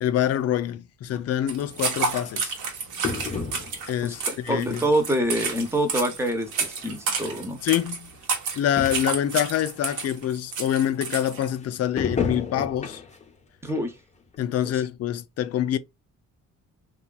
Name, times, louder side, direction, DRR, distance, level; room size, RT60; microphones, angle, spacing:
voice 1, 0.0-2.5 3.9-4.8 7.6-8.1 8.5-13.0 14.4-15.8, left 11 dB, 55° left, 0.4 m, -26 dB
sound 1, 1.1-1.2 2.2-2.3 3.0-4.0 4.5-5.0 5.4-5.5 6.5-6.6 6.8-6.9 7.7-7.8 8.1-8.2 8.5-8.6 8.8-9.2 9.8-9.9 12.0-13.3 13.7-13.8 14.3-14.4, left 4 dB, 25° left, 0.7 m, -31 dB
sound 2, 1.5-11.5, right 5 dB, 80° right, 1.0 m, -30 dB
voice 2, 4.0-7.6 13.6-14.0 14.7-14.8, right 1 dB, 10° right, 0.8 m, -26 dB
2.8 x 2.4 x 2.3 m
cardioid pair, 90°, 30 cm